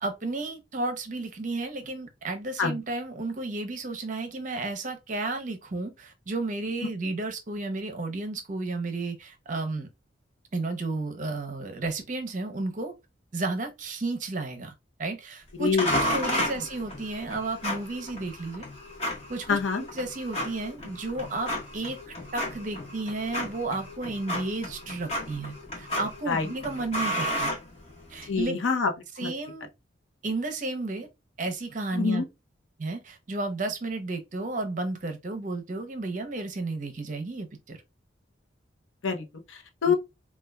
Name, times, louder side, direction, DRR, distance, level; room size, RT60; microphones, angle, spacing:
voice 1, 0.0-9.9 10.5-12.9 13.3-14.7 15.0-15.7 16.1-18.6 19.0-19.6 20.0-27.5 28.1-28.6 29.2-29.7 30.2-31.1 31.4-32.2 32.8-37.8 39.9-40.0, right 2 dB, 40° right, 0.6 m, -32 dB
voice 2, 15.5-15.9 16.6-16.7 19.5-19.8 26.3-26.5 28.2-28.9 29.2-29.3 31.9-32.3 39.0-39.9, left 5 dB, 85° left, 0.7 m, -26 dB
sound 1, 15.8-28.3, equal, 35° left, 0.9 m, -33 dB
4.3 x 2.2 x 2.2 m
head